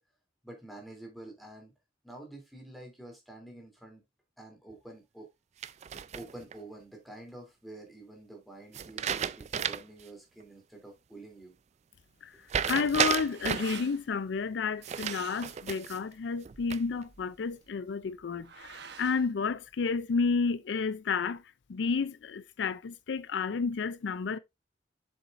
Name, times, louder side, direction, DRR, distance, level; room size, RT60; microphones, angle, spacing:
voice 1, 0.4-1.7 2.0-4.0 4.4-5.3 6.1-11.6, right 2 dB, ahead, 3.1 m, -48 dB
sound 1, 5.6-6.5 8.7-10.0 10.4-10.5 12.5-13.8 14.8-16.0 16.4-17.0, right 8 dB, 35° right, 0.3 m, -32 dB
sound 2, 12.5-20.4, right 6 dB, 60° right, 1.0 m, -49 dB
voice 2, 12.7-21.4 21.7-24.4, left 5 dB, 70° left, 0.4 m, -31 dB
7.1 x 7.0 x 2.5 m
head